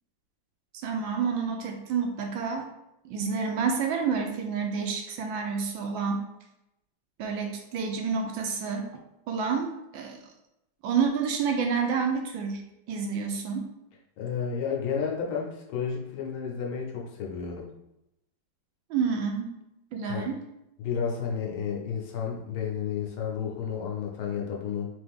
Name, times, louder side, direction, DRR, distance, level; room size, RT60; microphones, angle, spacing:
voice 1, 0.8-2.7 3.0-6.2 7.2-8.9 9.3-10.2 10.8-12.6 12.9-13.7 18.9-19.6 19.9-20.4, right 5 dB, 75° right, 3 dB, 1.2 m, -29 dB
voice 2, 14.2-17.6 20.0-20.3 20.8-24.9, left 6 dB, 80° left, -1 dB, 1.7 m, -31 dB
3.8 x 3.3 x 3.5 m, 0.87 s
omnidirectional pair, 2.3 m